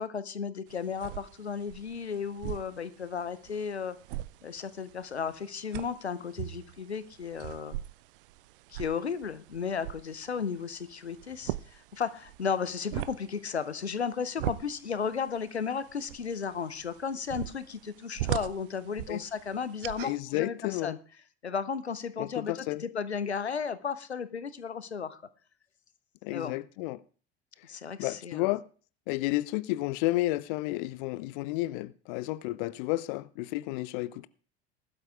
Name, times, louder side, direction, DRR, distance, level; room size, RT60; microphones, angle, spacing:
voice 1, 0.0-4.0 4.4-7.7 8.7-21.0 21.4-25.2 26.3-26.6 27.7-28.5, left 6 dB, 85° left, 0.7 m, -34 dB
sound 1, 0.7-20.2, right 16 dB, 55° right, 0.5 m, -41 dB
voice 2, 20.0-20.9 22.2-22.8 26.2-27.0 28.0-28.6 29.1-34.3, left 18 dB, 50° left, 0.5 m, -31 dB
20.0 x 12.0 x 2.4 m
figure-of-eight pair, 75°, 32 cm